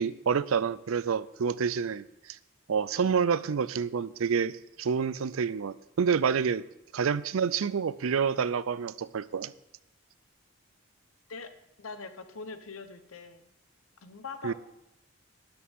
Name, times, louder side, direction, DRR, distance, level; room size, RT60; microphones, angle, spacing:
voice 1, 0.0-2.4 2.7-6.6 6.9-9.5 14.4-14.5, right 6 dB, 80° right, 18 dB, 0.5 m, -28 dB
voice 2, 11.8-13.5 14.0-14.5, left 4 dB, 85° left, 10 dB, 1.0 m, -42 dB
12.5 x 11.0 x 3.6 m, 0.90 s
head